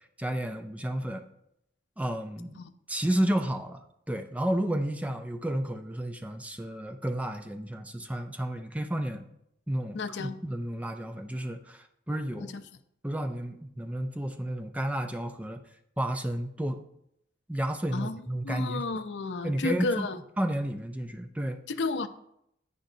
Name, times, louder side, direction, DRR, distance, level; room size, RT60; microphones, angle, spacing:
voice 1, 0.2-1.2 2.0-2.6 2.9-3.8 4.1-9.3 9.7-12.5 13.0-15.6 16.0-16.8 17.5-18.8 19.4-20.1 20.4-21.6, right 1 dB, 10° right, 6 dB, 0.4 m, -31 dB
voice 2, 9.9-10.4 12.4-12.5 17.9-20.2 21.7-22.1, left 3 dB, 75° left, 11 dB, 0.5 m, -32 dB
10.5 x 8.7 x 2.7 m, 0.77 s
head